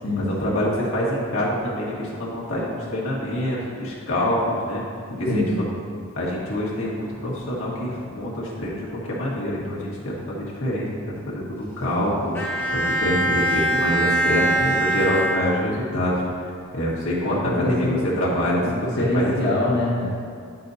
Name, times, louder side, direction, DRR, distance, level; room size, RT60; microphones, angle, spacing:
voice 1, 0.2-4.8 5.2-5.4 6.1-12.3 12.7-16.2 16.7-18.9 19.1-19.3 19.6-19.8, equal, 75° left, -5 dB, 1.7 m, -26 dB
voice 2, 5.1-5.6 13.0-13.2 17.2-18.0 19.0-20.1, left 1 dB, 60° left, -7 dB, 1.3 m, -24 dB
Bowed string instrument, 12.3-16.0, right 1 dB, 10° left, 0.9 m, -23 dB
9.0 x 6.6 x 2.7 m, 2.2 s
head